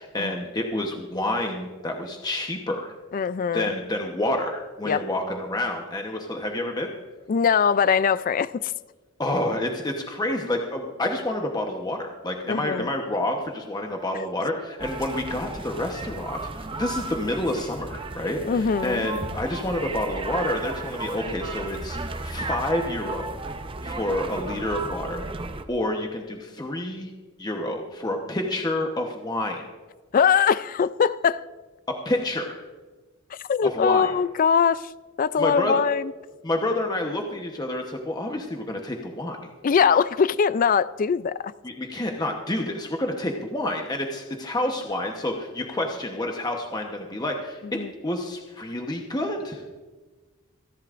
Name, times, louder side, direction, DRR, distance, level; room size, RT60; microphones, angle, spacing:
voice 1, 0.0-2.9 3.5-6.9 9.2-23.3 23.8-25.2 25.7-27.1 27.4-29.6 32.0-32.6 33.7-34.1 35.4-35.8 36.4-39.5 41.6-47.6 48.0-49.6, left 1 dB, 20° left, 2 dB, 1.0 m, -28 dB
voice 2, 3.1-3.7 4.8-5.0 7.3-8.7 12.5-12.9 18.4-19.1 30.1-31.4 33.3-34.9 35.2-36.1 39.6-41.5 47.7-47.9, left 6 dB, 40° left, 17 dB, 0.3 m, -22 dB
sound 1, 14.8-25.6, right 3 dB, 25° right, 0.7 m, -34 dB
27.0 x 11.5 x 2.5 m, 1.3 s
head